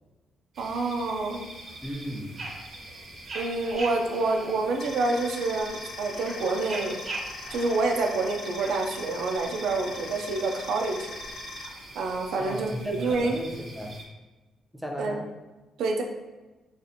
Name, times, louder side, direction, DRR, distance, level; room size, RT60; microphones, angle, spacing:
sound 1, 0.5-14.0, right 2 dB, 45° right, 0.7 m, -42 dB
voice 1, 0.6-1.5 3.3-7.0 7.5-11.1 12.0-13.4 15.0-15.2 15.8-16.0, right 3 dB, 80° right, 2 dB, 0.4 m, -27 dB
voice 2, 1.8-2.4 12.4-13.9 14.7-15.2, equal, ahead, 0 dB, 0.6 m, -35 dB
sound 2, 4.8-11.7, left 3 dB, 50° left, 0.4 m, -41 dB
2.7 x 2.4 x 4.1 m, 1.1 s
cardioid pair, 90°, 0 cm